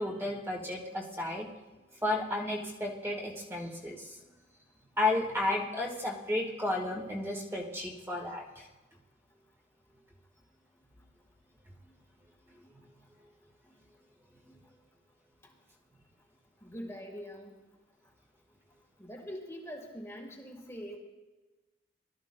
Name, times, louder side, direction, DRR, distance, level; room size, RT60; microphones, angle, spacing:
voice 1, 0.0-1.5 2.0-4.2 5.0-8.7 14.5-14.6, left 2 dB, 15° right, -1 dB, 1.5 m, -33 dB
voice 2, 16.6-17.6 19.0-21.0, equal, 15° left, 1 dB, 1.5 m, -43 dB
21.5 x 12.5 x 2.2 m, 1.2 s
head